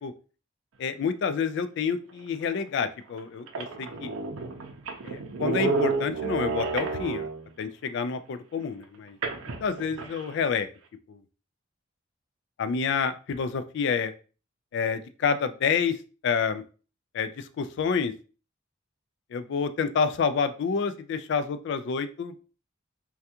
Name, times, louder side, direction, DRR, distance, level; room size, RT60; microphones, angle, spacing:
voice 1, 0.8-4.1 5.0-7.3 7.6-9.2 9.6-10.7 11.1-11.2 12.6-14.1 14.7-16.0 16.2-16.6 17.1-18.1 19.3-22.3, left 6 dB, 60° left, 11 dB, 0.3 m, -28 dB
sound 1, 2.5-2.6 3.2-3.3 3.5-7.5 9.2-10.3, right 4 dB, 90° right, 0.5 m, -30 dB
3.4 x 2.3 x 2.7 m, 0.36 s
head